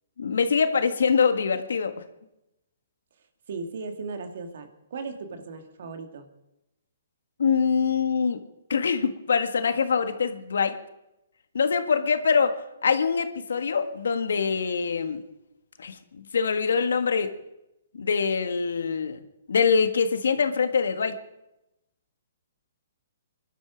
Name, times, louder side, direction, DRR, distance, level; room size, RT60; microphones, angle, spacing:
voice 1, 0.2-2.0 7.4-8.4 8.7-10.8 11.5-15.2 15.8-17.3 17.9-19.2 19.5-21.2, left 5 dB, 75° left, 10 dB, 1.6 m, -24 dB
voice 2, 3.1-6.3, right 4 dB, 65° right, 7 dB, 2.4 m, -37 dB
22.5 x 12.0 x 5.2 m, 0.90 s
hypercardioid pair, 140°, 0 cm